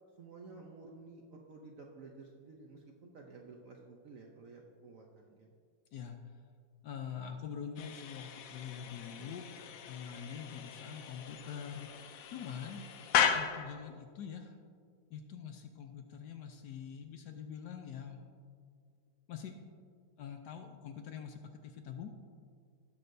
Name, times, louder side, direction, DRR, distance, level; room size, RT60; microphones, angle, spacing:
voice 1, 0.2-5.5, right 3 dB, 60° right, 0 dB, 0.9 m, -53 dB
voice 2, 5.9-6.3 6.8-9.4 9.8-11.9 12.3-12.8 13.3-14.6 15.1-18.3 19.3-19.6 20.2-22.1, left 7 dB, 70° left, 5 dB, 1.0 m, -44 dB
sound 1, 7.8-13.9, left 8 dB, 85° left, 0.7 m, -36 dB
17.5 x 6.4 x 2.6 m, 2.2 s
omnidirectional pair, 2.1 m